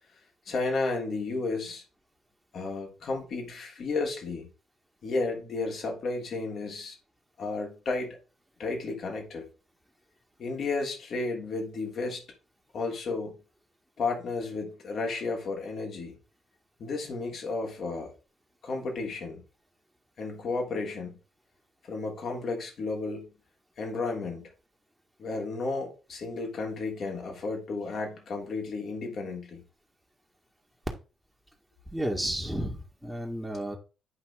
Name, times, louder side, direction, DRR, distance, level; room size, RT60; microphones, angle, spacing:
voice 1, 0.4-1.8 2.5-4.5 5.0-7.0 7.4-8.2 8.6-9.5 10.4-12.2 12.7-13.3 14.0-16.2 16.8-18.1 18.6-19.4 20.2-21.2 21.8-23.3 23.8-24.5 25.2-29.6, left 3 dB, 55° left, 2.9 m, -33 dB
voice 2, 31.9-33.8, right 1 dB, 5° right, 1.9 m, -32 dB
9.6 x 5.5 x 3.6 m
figure-of-eight pair, 45°, 0 cm